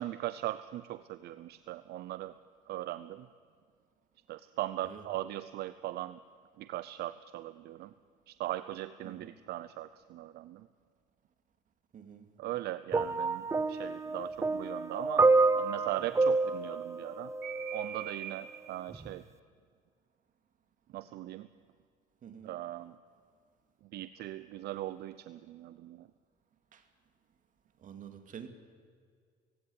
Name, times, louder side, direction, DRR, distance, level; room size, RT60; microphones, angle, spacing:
voice 1, 0.0-2.3 2.7-3.3 4.3-6.2 6.6-7.9 8.3-10.7 12.4-19.2 20.9-21.5 22.4-23.0 23.8-26.1, right 14 dB, 75° right, 14 dB, 0.7 m, -39 dB
voice 2, 11.9-12.3 22.2-22.6 26.7-26.8 27.8-28.5, right 8 dB, 50° right, 7 dB, 2.5 m, -48 dB
sound 1, 12.9-18.0 18.9-19.1, right 3 dB, 15° right, 0.9 m, -28 dB
18.5 x 16.5 x 9.7 m, 2.1 s
cardioid pair, 110°, 17 cm